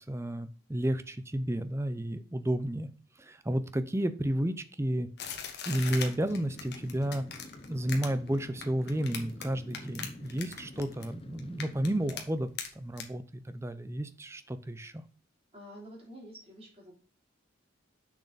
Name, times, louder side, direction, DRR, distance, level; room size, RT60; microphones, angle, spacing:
voice 1, 0.0-2.9 3.2-5.1 5.7-7.2 7.7-12.5 12.8-14.9, right 1 dB, 15° right, 11 dB, 0.5 m, -32 dB
sound 1, 5.2-9.4 9.7-11.1 11.4-12.2 12.6-12.7 13.0-13.1, left 7 dB, 55° left, 1.4 m, -39 dB
sound 2, 5.9-12.3, left 1 dB, 30° left, 0.7 m, -48 dB
voice 2, 15.5-16.9, equal, 30° right, -2 dB, 3.3 m, -48 dB
6.7 x 6.2 x 4.0 m, 0.41 s
head